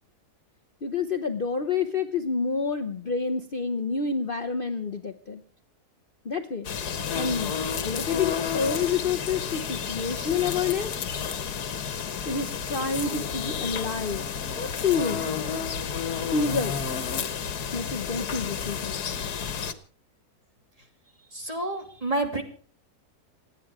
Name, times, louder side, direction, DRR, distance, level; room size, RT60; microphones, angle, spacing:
voice 1, 0.8-5.4 6.2-6.7 7.1-7.5 7.8-10.9 12.3-14.3 14.6-15.3 16.2-16.8 17.7-19.0, left 5 dB, 40° left, 7 dB, 1.0 m, -28 dB
sound 1, 6.6-19.7, left 7 dB, 80° left, 1.7 m, -31 dB
voice 2, 21.3-22.4, right 2 dB, 25° right, 4 dB, 2.7 m, -29 dB
27.5 x 9.4 x 4.9 m, 0.43 s
omnidirectional pair, 1.6 m